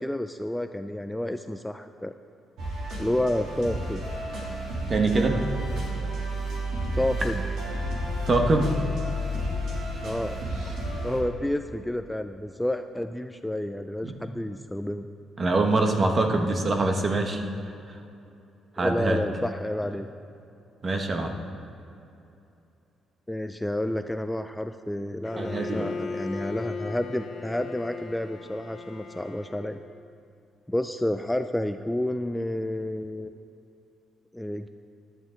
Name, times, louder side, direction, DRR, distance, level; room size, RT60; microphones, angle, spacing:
voice 1, 0.0-2.1 3.0-4.0 6.9-7.4 10.0-10.4 11.0-15.1 18.8-20.1 23.3-29.8 30.7-33.3 34.3-34.7, left 1 dB, 5° left, 8 dB, 0.4 m, -30 dB
sound 1, 2.6-11.2, equal, 75° right, 3.1 m, -31 dB
voice 2, 4.9-5.4 8.2-8.7 14.0-14.2 15.4-17.4 17.9-18.0 18.7-19.2 20.8-21.4 25.4-25.9, right 2 dB, 35° right, 4 dB, 1.4 m, -24 dB
Bowed string instrument, 25.2-30.0, left 5 dB, 55° left, 0.8 m, -38 dB
13.5 x 11.0 x 3.9 m, 2.8 s
cardioid pair, 90°, 0 cm